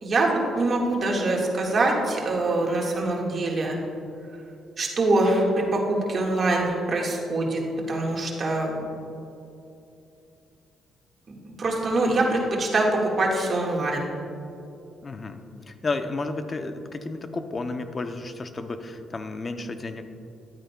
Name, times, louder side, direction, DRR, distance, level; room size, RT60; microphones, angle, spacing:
voice 1, 0.0-3.8 4.8-8.9 11.3-14.1, right 2 dB, 45° right, -1 dB, 1.7 m, -24 dB
voice 2, 15.0-20.0, left 3 dB, 35° left, 8 dB, 0.6 m, -32 dB
11.5 x 8.7 x 2.3 m, 2.7 s
cardioid pair, 90°, 0 cm